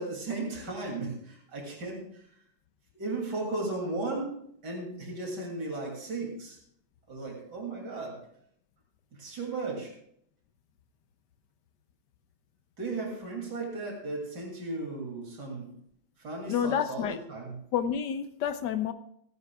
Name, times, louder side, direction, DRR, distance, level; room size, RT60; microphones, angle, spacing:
voice 1, 0.0-2.2 2.9-4.3 4.6-6.6 7.1-8.2 9.1-9.9 12.8-15.7 16.2-17.5, right 2 dB, 70° right, -1 dB, 3.4 m, -35 dB
voice 2, 16.5-17.2 17.7-18.9, left 8 dB, 80° left, 10 dB, 1.2 m, -29 dB
26.5 x 9.5 x 2.3 m, 0.70 s
omnidirectional pair, 1.9 m